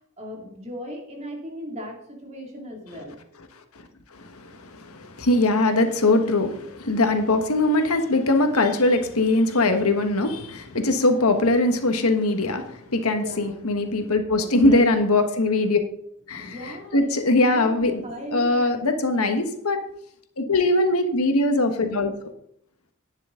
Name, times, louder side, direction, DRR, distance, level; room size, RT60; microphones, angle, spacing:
voice 1, 0.0-3.2 13.1-13.6 14.3-14.9 16.2-19.3, left 1 dB, 30° right, 0 dB, 2.5 m, -37 dB
voice 2, 4.1-15.8 16.3-18.0 18.3-19.8 20.4-22.1, left 2 dB, 90° left, 6 dB, 1.4 m, -21 dB
11.0 x 9.9 x 3.8 m, 0.71 s
head